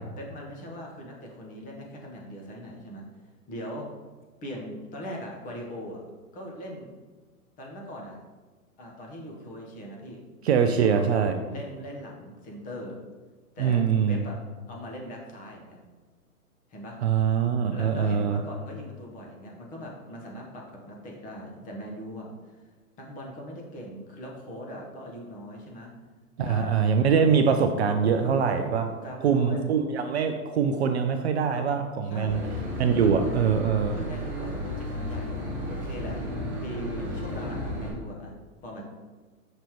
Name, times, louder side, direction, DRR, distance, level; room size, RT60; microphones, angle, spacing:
voice 1, 0.0-3.1 3.5-3.9 4.4-6.0 6.3-6.9 7.6-8.2 8.8-10.2 10.6-11.1 11.4-13.0 13.5-14.4 14.7-15.8 16.7-17.0 17.7-22.6 23.0-25.9 26.4-26.9 28.1-29.6 32.0-32.5 32.9-33.3 33.9-36.2 36.6-38.3 38.6-38.8, equal, 15° left, -1 dB, 1.0 m, -40 dB
voice 2, 10.4-11.3 13.6-14.2 17.0-18.4 26.4-28.9 29.2-32.4 32.8-34.0, right 6 dB, 45° right, 6 dB, 0.5 m, -23 dB
Boat Water vehicle / Engine, 32.3-37.9, left 1 dB, 5° right, 1.8 m, -33 dB
6.6 x 5.2 x 3.0 m, 1.3 s
hypercardioid pair, 135°, 46 cm